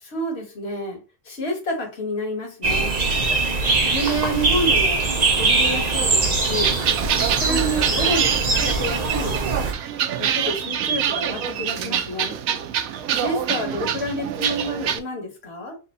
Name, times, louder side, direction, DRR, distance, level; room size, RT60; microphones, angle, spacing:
voice 1, 0.1-1.0 1.3-3.0 3.8-5.0 5.4-6.8 7.2-9.4 10.2-12.4 13.1-15.8, equal, 50° left, 1.8 m, -29 dB
sound 1, 2.6-9.7, right 3 dB, 35° right, 0.9 m, -22 dB
sound 2, 6.4-15.0, right 8 dB, 80° right, 1.1 m, -25 dB
4.4 x 2.8 x 3.9 m
omnidirectional pair, 1.4 m